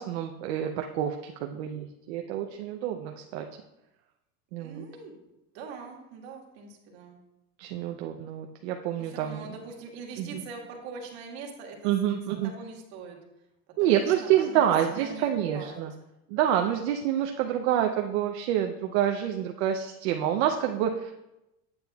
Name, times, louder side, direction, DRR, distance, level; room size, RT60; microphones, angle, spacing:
voice 1, 0.0-3.5 4.5-4.8 7.6-9.5 10.2-10.4 11.8-12.5 13.8-15.9 16.3-21.2, right 10 dB, 85° right, 4 dB, 0.6 m, -27 dB
voice 2, 4.6-5.2 5.5-7.2 9.0-13.2 13.8-15.8, right 4 dB, 70° right, 0 dB, 1.7 m, -42 dB
8.7 x 7.9 x 2.3 m, 0.92 s
cardioid pair, 170°, 32 cm